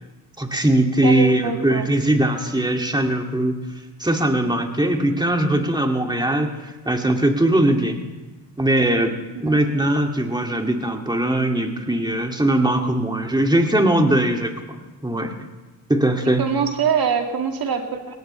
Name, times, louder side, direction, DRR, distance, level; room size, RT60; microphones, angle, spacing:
voice 1, 0.4-3.6 4.0-8.0 8.6-9.1 9.4-15.3 15.9-16.4, right 1 dB, 10° right, 3 dB, 2.4 m, -20 dB
voice 2, 1.0-1.9 9.3-9.6 16.4-18.2, right 6 dB, 60° right, 4 dB, 2.2 m, -24 dB
21.5 x 17.5 x 3.3 m, 1.2 s
supercardioid pair, 50°, 41 cm